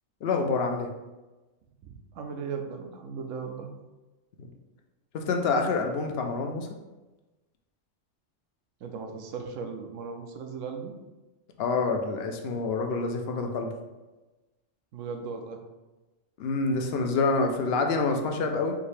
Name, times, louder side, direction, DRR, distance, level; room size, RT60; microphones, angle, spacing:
voice 1, 0.2-0.9 4.4-4.5 5.1-6.7 11.6-13.7 16.4-18.8, left 3 dB, 60° left, 4 dB, 0.7 m, -27 dB
voice 2, 1.8-3.7 8.8-10.9 14.9-15.6 17.1-17.2, right 5 dB, 80° right, 4 dB, 1.0 m, -37 dB
4.9 x 2.7 x 3.3 m, 1.1 s
omnidirectional pair, 1.3 m